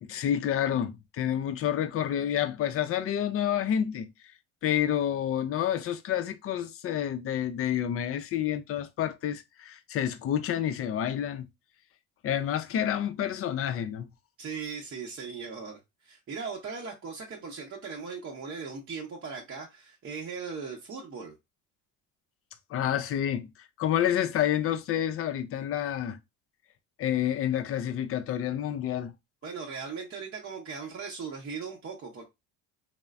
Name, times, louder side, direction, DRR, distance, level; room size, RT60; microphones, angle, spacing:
voice 1, 0.0-4.3 4.6-11.5 12.2-14.1 22.7-26.2 27.0-29.1, left 10 dB, 40° left, 0.4 m, -29 dB
voice 2, 14.4-21.4 29.4-32.2, right 5 dB, 35° right, 0.8 m, -38 dB
3.0 x 2.1 x 2.3 m
supercardioid pair, 85°, 37 cm